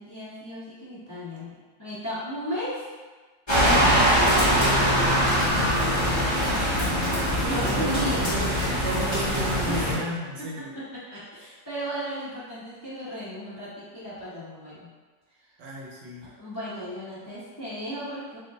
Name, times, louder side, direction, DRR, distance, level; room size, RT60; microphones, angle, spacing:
voice 1, 0.0-2.8 3.5-4.6 7.3-8.3 9.7-9.8 10.4-14.9 16.4-18.4, equal, 10° left, -12 dB, 1.1 m, -35 dB
sound 1, 3.5-9.9, equal, 40° left, 0.3 m, -22 dB
voice 2, 6.7-7.1 7.6-8.6 8.8-10.7 15.6-16.2, right 1 dB, 75° right, -4 dB, 1.2 m, -33 dB
2.9 x 2.5 x 3.8 m, 1.3 s
omnidirectional pair, 2.1 m